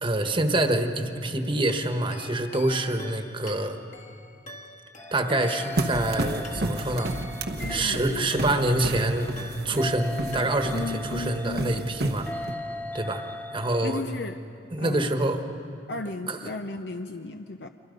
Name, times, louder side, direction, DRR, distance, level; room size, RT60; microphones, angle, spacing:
voice 1, 0.0-3.8 5.1-7.1 7.7-9.3 9.6-12.3 12.9-13.2 13.5-14.0 14.7-15.4 16.3-16.5, right 1 dB, 30° right, 6 dB, 1.4 m, -26 dB
sound 1, 1.7-8.9 9.4-10.0 10.3-11.0, left 3 dB, 45° left, 1.7 m, -45 dB
sound 2, 5.0-14.0, left 1 dB, 10° left, 0.8 m, -39 dB
sound 3, 5.8-12.5, right 1 dB, 65° right, 1.1 m, -32 dB
voice 2, 7.6-8.6 10.7-11.7 13.8-14.4 14.8-15.1 15.9-17.7, left 3 dB, 70° left, 6 dB, 0.7 m, -35 dB
30.0 x 24.5 x 5.3 m, 2.7 s
head